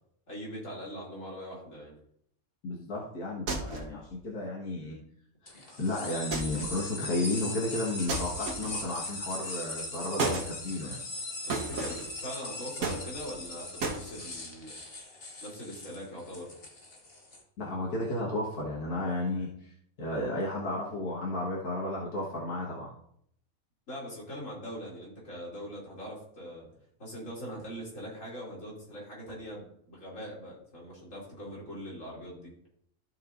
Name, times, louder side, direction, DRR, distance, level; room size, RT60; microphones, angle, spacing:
voice 1, 0.3-1.9 11.5-14.8 15.4-16.5 23.9-26.7 27.0-32.5, equal, 60° left, -5 dB, 3.4 m, -42 dB
voice 2, 2.6-5.0 5.8-11.0 17.6-19.7 20.0-22.9, left 1 dB, 90° left, -5 dB, 2.1 m, -33 dB
sound 1, 3.5-4.0 6.3-6.8 8.1-8.9 10.2-10.5 11.5-12.1 12.8-13.4 13.8-14.0, right 3 dB, 75° right, 1.7 m, -33 dB
sound 2, 5.5-17.4, left 2 dB, 40° left, 1.5 m, -40 dB
14.5 x 5.6 x 2.6 m, 0.69 s
omnidirectional pair, 1.5 m